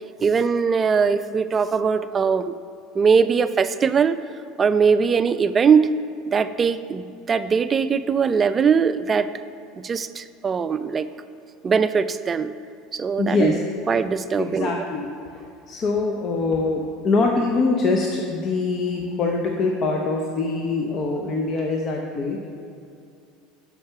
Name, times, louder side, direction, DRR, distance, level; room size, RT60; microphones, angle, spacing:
voice 1, 0.2-2.5 2.9-4.2 4.6-5.9 6.3-9.3 9.8-11.1 11.6-12.5 12.9-13.6 13.9-14.8, right 6 dB, 30° right, 13 dB, 0.3 m, -21 dB
voice 2, 13.2-13.6 14.4-15.1 15.7-22.5, left 3 dB, 40° left, 1 dB, 0.7 m, -23 dB
6.4 x 5.7 x 5.7 m, 2.5 s
hypercardioid pair, 90°, 0 cm